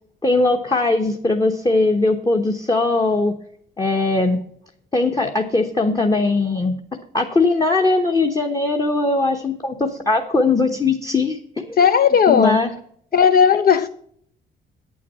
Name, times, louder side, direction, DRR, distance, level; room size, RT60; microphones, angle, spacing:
voice 1, 0.2-3.3 3.8-4.4 4.9-6.8 7.1-11.8 12.3-12.7, left 3 dB, 20° left, 2 dB, 1.1 m, -20 dB
voice 2, 11.8-12.6 13.1-13.9, left 7 dB, 50° left, 11 dB, 0.6 m, -15 dB
8.5 x 8.5 x 5.6 m, 0.65 s
cardioid pair, 90°, 20 cm